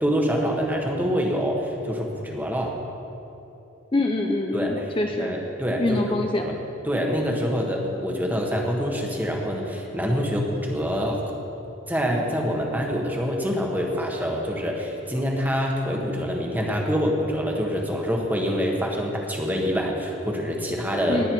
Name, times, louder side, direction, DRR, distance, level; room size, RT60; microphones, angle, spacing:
voice 1, 0.0-2.8 4.5-4.8 5.2-6.5 6.8-11.2 11.9-21.2, equal, 10° right, 0 dB, 1.4 m, -26 dB
voice 2, 3.9-5.3 5.8-6.5 21.1-21.3, left 2 dB, 25° left, 2 dB, 0.6 m, -25 dB
19.5 x 8.8 x 4.7 m, 2.9 s
head